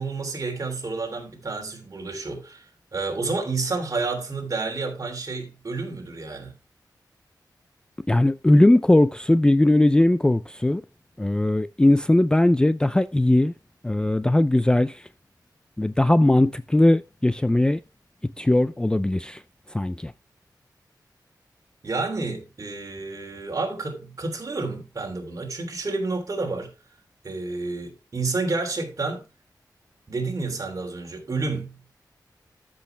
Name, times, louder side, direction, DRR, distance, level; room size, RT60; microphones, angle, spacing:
voice 1, 0.0-6.5 21.8-26.7 27.2-29.2 30.1-31.8, right 3 dB, 50° right, 3.3 m, -30 dB
voice 2, 8.1-10.8 11.2-13.5 13.8-15.0 15.8-17.8 18.2-19.4 19.7-20.1, left 1 dB, 10° left, 0.4 m, -19 dB
13.5 x 6.4 x 3.3 m
wide cardioid pair, 125°, 7 cm